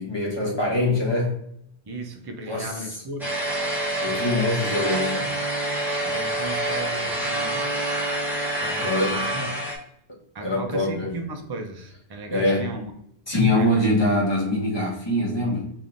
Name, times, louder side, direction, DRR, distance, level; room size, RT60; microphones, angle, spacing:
voice 1, 0.0-1.4 2.4-2.7 4.0-5.4 8.8-9.5 10.4-11.1 12.3-12.7 13.3-15.7, left 1 dB, 25° left, -4 dB, 1.2 m, -24 dB
voice 2, 1.9-3.3 6.0-8.0 8.6-9.4 10.3-13.0 13.5-13.9, right 2 dB, 40° right, 4 dB, 0.3 m, -36 dB
sound 1, 3.2-9.7, right 1 dB, ahead, 1.0 m, -27 dB
5.2 x 3.0 x 2.5 m, 0.74 s
omnidirectional pair, 1.1 m